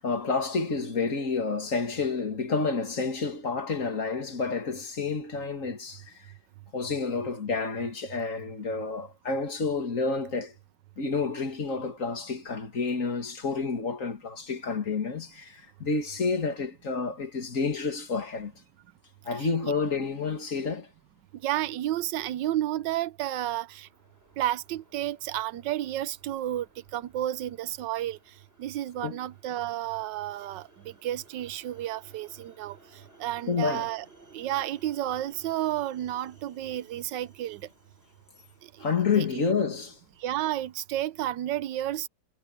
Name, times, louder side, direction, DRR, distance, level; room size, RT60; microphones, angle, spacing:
voice 1, 0.0-6.0 6.7-10.5 11.0-18.5 19.2-20.9 29.0-29.2 33.5-33.9 38.8-40.0, left 4 dB, 40° left, 2.6 m, -29 dB
voice 2, 19.3-19.7 21.4-23.9 24.4-26.7 26.9-28.2 28.6-32.8 33.2-34.1 34.3-37.6 38.6-38.9 39.2-39.4 40.2-42.1, right 13 dB, 70° right, 1.3 m, -31 dB
sound 1, 23.6-41.1, right 2 dB, 30° right, 6.2 m, -58 dB
omnidirectional pair, 2.1 m